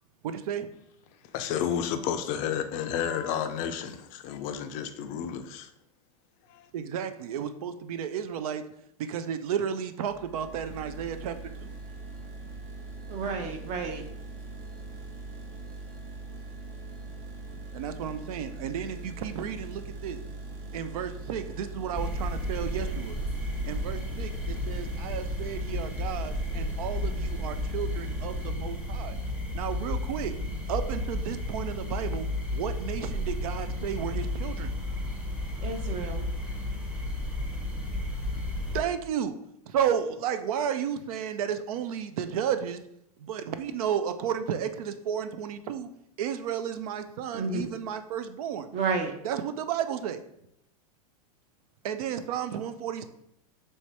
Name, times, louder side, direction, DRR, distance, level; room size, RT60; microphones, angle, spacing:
voice 1, 0.2-0.7 6.7-8.6 9.0-11.7 17.7-20.2 20.7-23.2 23.7-29.2 29.5-30.3 30.7-34.8 38.7-39.4 39.7-42.8 43.2-45.9 46.2-48.7 49.2-50.2 51.8-53.1, right 8 dB, 70° right, 0.4 m, -32 dB
voice 2, 1.3-5.7 6.5-6.7, left 8 dB, 40° left, 0.4 m, -31 dB
sound 1, 10.0-28.5, right 2 dB, 55° right, 1.0 m, -41 dB
voice 3, 13.1-14.0 35.6-36.3 47.3-47.7 48.7-49.1, right 4 dB, 40° right, 0.7 m, -31 dB
sound 2, 21.9-38.8, left 1 dB, 5° right, 0.7 m, -33 dB
3.2 x 2.7 x 4.6 m
hypercardioid pair, 120°, 19 cm